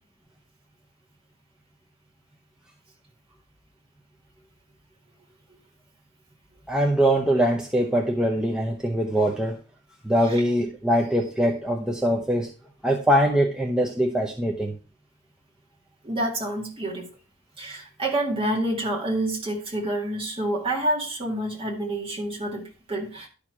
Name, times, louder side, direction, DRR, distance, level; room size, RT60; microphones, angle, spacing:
voice 1, 6.7-9.6 10.0-12.5 12.8-14.8, equal, 5° right, -1 dB, 0.8 m, -22 dB
voice 2, 16.0-17.1 17.6-23.3, right 1 dB, 25° right, -1 dB, 2.0 m, -28 dB
11.5 x 4.6 x 4.8 m, 0.35 s
head